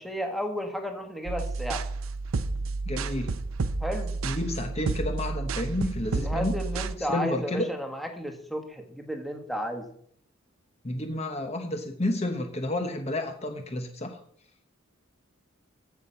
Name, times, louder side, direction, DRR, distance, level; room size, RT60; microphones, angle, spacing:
voice 1, 0.0-1.8 3.8-4.1 6.1-9.9, equal, ahead, 4 dB, 1.4 m, -33 dB
sound 1, 1.3-7.0, right 3 dB, 80° right, 0.6 m, -31 dB
voice 2, 2.9-3.3 4.2-6.5 7.0-7.7 10.8-14.2, left 1 dB, 30° left, 6 dB, 1.0 m, -30 dB
15.0 x 5.8 x 5.5 m, 0.65 s
head